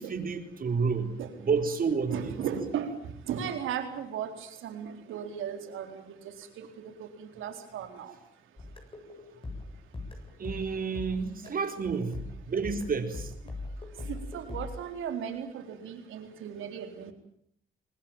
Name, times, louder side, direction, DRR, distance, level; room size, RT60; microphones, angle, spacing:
voice 1, 0.0-1.1 1.4-2.3 10.4-12.2 12.5-13.3, right 5 dB, 45° right, 7 dB, 4.3 m, -30 dB
voice 2, 2.1-6.2 6.6-8.1 11.4-11.5 14.0-17.1, right 8 dB, 80° right, 6 dB, 4.2 m, -36 dB
sound 1, 8.6-11.7 12.1-14.8, left 2 dB, 25° left, 7.8 m, -40 dB
24.5 x 20.5 x 9.1 m, 0.68 s
cardioid pair, 90°, 20 cm